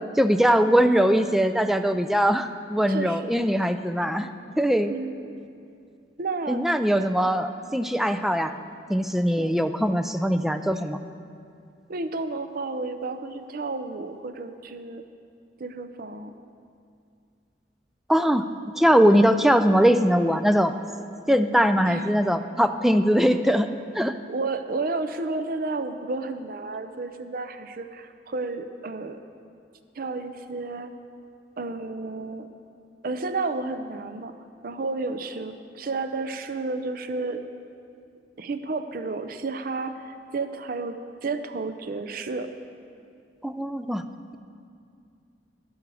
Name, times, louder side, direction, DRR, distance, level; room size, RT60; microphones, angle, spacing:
voice 1, 0.2-4.3 4.6-4.9 6.5-8.6 8.9-11.0 18.1-18.4 18.8-20.8 21.3-24.2 43.4-44.0, equal, ahead, 9 dB, 0.3 m, -21 dB
voice 2, 2.9-3.6 4.9-5.3 6.2-6.6 9.4-9.5 11.9-15.0 15.6-16.3 21.8-22.1 24.3-29.2 30.0-30.9 31.6-32.5 33.0-34.3 34.6-37.4 38.4-42.5, right 3 dB, 55° right, 9 dB, 0.5 m, -32 dB
11.5 x 11.0 x 4.8 m, 2.4 s
head